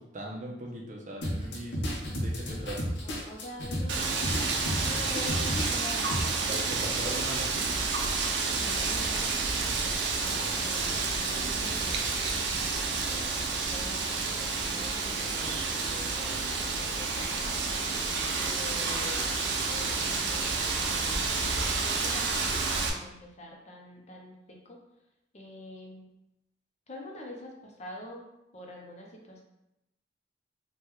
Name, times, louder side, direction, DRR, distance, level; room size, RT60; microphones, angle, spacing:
voice 1, 0.0-2.8 6.5-7.8 10.7-11.0, right 1 dB, 45° right, -1 dB, 0.6 m, -40 dB
sound 1, 1.2-6.2, equal, 80° left, 0.7 m, -33 dB
voice 2, 3.0-4.3 4.8-6.2 6.9-7.1 8.4-12.0 13.1-17.3 18.3-20.5 20.8-21.3 21.6-24.8 25.3-26.1 26.9-28.2 28.5-29.4, left 1 dB, 40° left, 0 dB, 0.5 m, -45 dB
Wind, 3.9-22.9, right 4 dB, 90° right, 0.4 m, -30 dB
3.5 x 2.2 x 2.9 m, 0.88 s
head